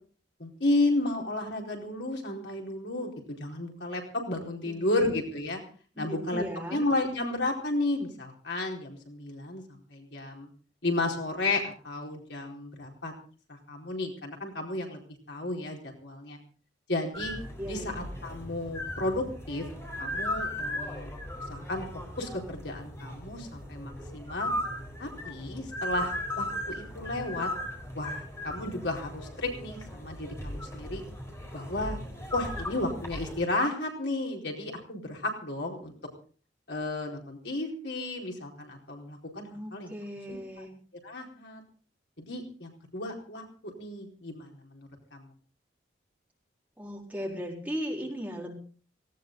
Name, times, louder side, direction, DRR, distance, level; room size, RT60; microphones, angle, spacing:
voice 1, 0.4-5.6 6.0-6.4 6.7-10.5 10.8-13.1 13.5-15.0 15.3-16.4 16.9-17.4 17.7-19.6 20.0-21.1 21.5-21.8 22.2-24.5 25.0-26.1 26.4-27.5 27.9-31.0 31.5-32.0 32.3-35.9 36.7-39.9 40.3-40.6 41.0-41.6 42.2-45.3, left 2 dB, 70° left, 1 dB, 4.5 m, -33 dB
voice 2, 6.0-6.9 17.6-18.0 39.5-40.7 46.8-48.5, equal, 10° right, -1 dB, 4.3 m, -37 dB
sound 1, 17.1-33.4, left 1 dB, 15° left, 4.4 m, -37 dB
18.5 x 17.5 x 3.9 m, 0.41 s
head